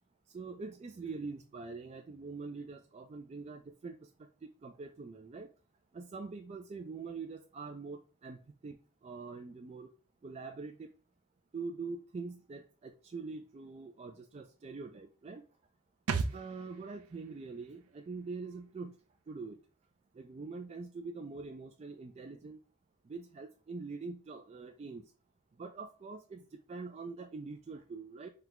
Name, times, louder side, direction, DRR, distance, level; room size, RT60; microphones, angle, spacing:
voice 1, 0.3-4.1 4.4-5.5 5.9-8.8 9.0-9.9 10.2-10.9 11.5-15.4 16.1-18.9 19.3-19.6 20.2-22.6 23.1-25.0 25.6-26.4 26.7-28.3, right 4 dB, 30° right, 4 dB, 0.3 m, -44 dB
sound 1, 16.1-19.6 19.8-19.9, right 4 dB, 85° right, 0.5 m, -40 dB
4.3 x 2.2 x 3.9 m, 0.37 s
head